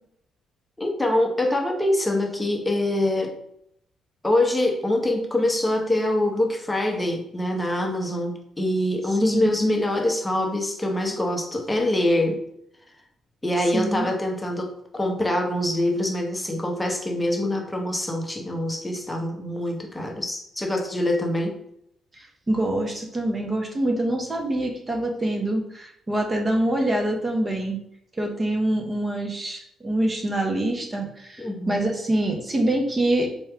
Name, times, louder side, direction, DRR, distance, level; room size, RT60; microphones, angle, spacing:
voice 1, 0.8-3.3 4.2-12.4 13.4-21.6 31.4-31.8, left 1 dB, 10° left, 1 dB, 0.8 m, -24 dB
voice 2, 9.1-9.5 13.7-14.1 22.1-27.8 28.2-33.3, right 1 dB, 25° right, 2 dB, 0.9 m, -25 dB
4.3 x 2.3 x 3.5 m, 0.74 s
cardioid pair, 90°, 0 cm